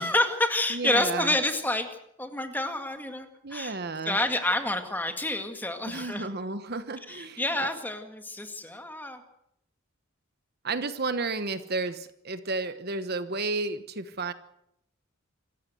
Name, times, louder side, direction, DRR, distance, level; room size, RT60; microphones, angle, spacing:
voice 1, 0.0-1.9 2.2-3.8 4.1-6.3 7.1-9.2, left 1 dB, 10° left, 6 dB, 2.0 m, -28 dB
voice 2, 0.7-1.3 3.4-4.2 5.9-7.7 10.6-14.3, right 3 dB, 50° right, 11 dB, 1.1 m, -32 dB
26.5 x 15.0 x 7.9 m, 0.77 s
head